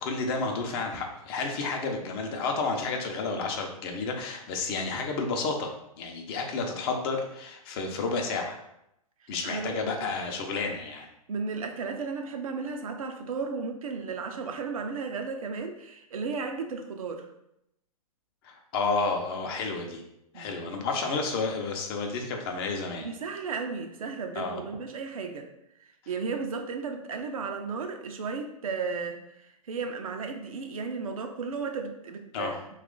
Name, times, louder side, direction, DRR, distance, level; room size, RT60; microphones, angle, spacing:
voice 1, 0.0-8.6 9.3-11.1 18.4-20.0 20.3-23.1 24.4-24.6 32.3-32.6, left 4 dB, 40° left, 3 dB, 0.6 m, -31 dB
voice 2, 9.4-9.8 11.3-17.3 20.3-20.7 23.0-25.5 25.8-32.6, right 4 dB, 65° right, 4 dB, 0.5 m, -34 dB
2.9 x 2.4 x 3.7 m, 0.80 s
figure-of-eight pair, 115°, 19 cm